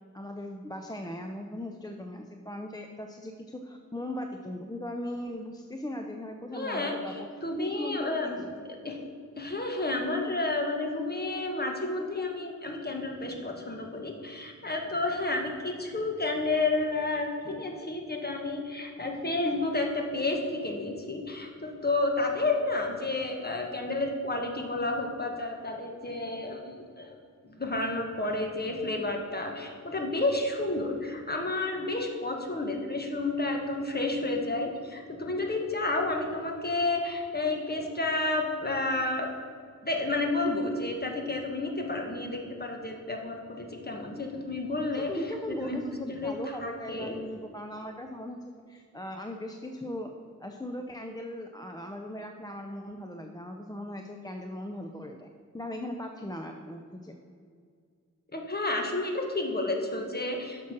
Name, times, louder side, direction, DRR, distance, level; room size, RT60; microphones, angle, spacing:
voice 1, 0.1-7.3 7.6-8.6 45.1-50.1 50.4-55.3 55.5-57.2, left 1 dB, 15° left, 4 dB, 0.5 m, -38 dB
voice 2, 6.5-8.5 8.8-9.0 9.4-27.2 27.6-39.3 39.8-45.1 45.5-45.8 46.1-47.1 58.3-60.7, left 2 dB, 30° left, 2 dB, 1.3 m, -31 dB
7.1 x 6.1 x 5.9 m, 2.1 s
wide cardioid pair, 70°, 30 cm